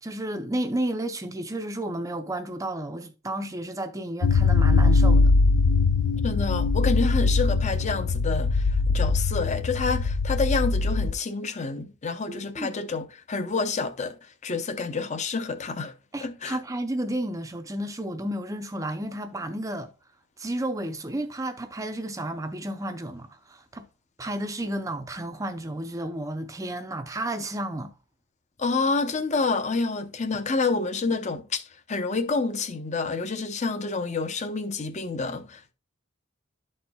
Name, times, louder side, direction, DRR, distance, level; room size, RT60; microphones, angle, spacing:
voice 1, 0.0-5.3 12.3-12.8 16.1-19.9 20.4-23.9 24.2-27.9, right 1 dB, 15° right, 0.5 m, -32 dB
sound 1, 4.2-11.1, left 3 dB, 90° left, 0.5 m, -21 dB
voice 2, 6.2-14.2 14.4-15.9 16.2-16.6 28.6-35.7, left 4 dB, 35° left, 0.7 m, -28 dB
12.0 x 4.3 x 2.3 m
head